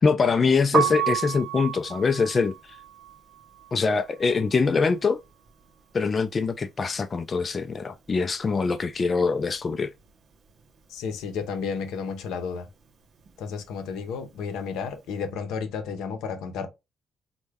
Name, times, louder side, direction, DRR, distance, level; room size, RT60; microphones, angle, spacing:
voice 1, 0.0-2.5 3.7-5.2 5.9-9.9, left 4 dB, 35° left, 0.3 m, -23 dB
Piano, 0.6-6.5 6.8-8.4 8.7-15.1, right 9 dB, 55° right, 0.6 m, -33 dB
voice 2, 10.9-12.7 13.4-16.7, left 6 dB, 90° left, 0.6 m, -32 dB
3.3 x 2.1 x 3.4 m
cardioid pair, 90°, 0 cm